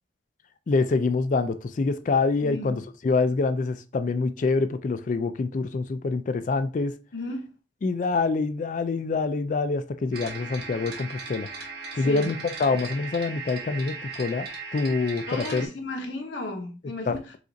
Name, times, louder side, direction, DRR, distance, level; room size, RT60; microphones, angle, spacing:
voice 1, 0.7-7.0 7.8-11.5 11.9-14.5 14.7-15.7 17.1-17.4, left 3 dB, 45° left, 0.3 m, -26 dB
voice 2, 2.4-2.7 7.1-7.5 12.0-12.3 15.3-17.2, left 2 dB, 80° left, 0.9 m, -34 dB
sound 1, 10.1-15.7, right 4 dB, 60° right, 1.3 m, -38 dB
5.0 x 2.5 x 3.9 m
head